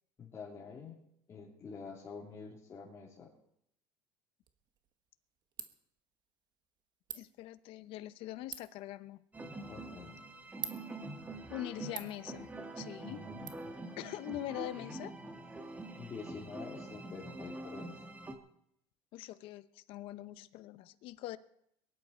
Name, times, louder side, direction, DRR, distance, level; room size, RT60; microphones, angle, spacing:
voice 1, 0.2-1.0 1.3-3.3 9.7-10.2 13.0-13.5 14.7-14.9 16.0-18.0, left 5 dB, 30° left, -7 dB, 3.5 m, -47 dB
Ratchet pawl, 4.4-13.5, right 9 dB, 45° right, 1.3 m, -50 dB
voice 2, 7.1-9.2 11.5-13.2 14.0-15.1 19.1-21.4, left 14 dB, 60° left, 14 dB, 0.8 m, -43 dB
sound 1, 9.3-18.3, right 2 dB, 15° right, 1.6 m, -45 dB
22.0 x 11.0 x 4.4 m, 0.73 s
cardioid pair, 130°, 10 cm